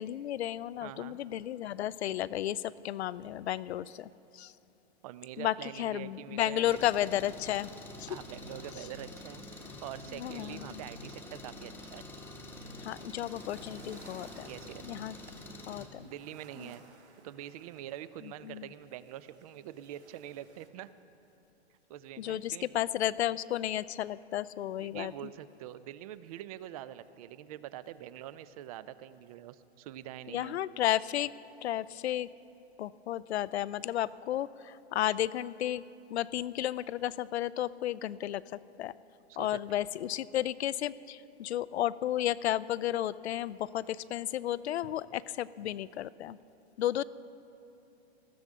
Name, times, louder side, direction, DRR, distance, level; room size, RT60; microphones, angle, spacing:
voice 1, 0.0-4.5 5.4-7.7 8.0-8.1 10.1-10.9 12.8-14.5 14.8-15.1 15.7-16.1 16.6-16.7 18.4-18.7 22.2-25.1 30.3-31.3 31.6-32.3 32.8-35.8 36.1-38.9 39.4-46.4 46.8-47.0, left 12 dB, 75° left, 18 dB, 0.5 m, -33 dB
voice 2, 0.8-1.2 5.0-6.9 8.1-12.1 14.4-15.1 16.0-16.8 17.2-20.9 21.9-22.8 24.8-30.6 39.3-39.6, right 12 dB, 35° right, 15 dB, 0.5 m, -45 dB
Engine, 6.6-15.9, left 2 dB, 5° left, 1.0 m, -47 dB
sound 1, 12.5-20.7, right 4 dB, 85° right, 1.7 m, -59 dB
19.5 x 14.5 x 3.6 m, 2.8 s
hypercardioid pair, 130°, 33 cm